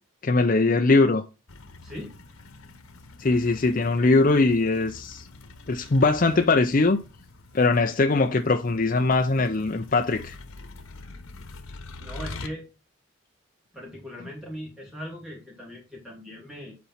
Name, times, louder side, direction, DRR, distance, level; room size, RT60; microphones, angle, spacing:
voice 1, 0.2-1.2 3.2-5.3 5.7-7.0 7.5-10.4, left 3 dB, 40° left, 0.5 m, -21 dB
sound 1, 1.5-12.5, left 3 dB, 85° left, 1.2 m, -44 dB
voice 2, 1.8-2.2 3.8-4.4 12.0-12.7 13.7-16.8, equal, ahead, 2.7 m, -39 dB
8.5 x 4.2 x 5.6 m
head